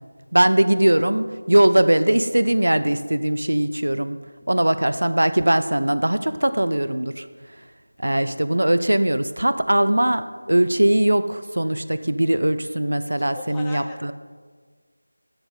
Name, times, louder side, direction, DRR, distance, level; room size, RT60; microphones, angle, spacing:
voice 1, 0.3-4.2 4.5-7.3 8.0-14.1, right 1 dB, 70° right, 13 dB, 0.5 m, -20 dB
voice 2, 13.2-14.1, left 3 dB, 5° left, -1 dB, 0.5 m, -40 dB
11.0 x 8.3 x 3.8 m, 1.5 s
figure-of-eight pair, 170°, 0 cm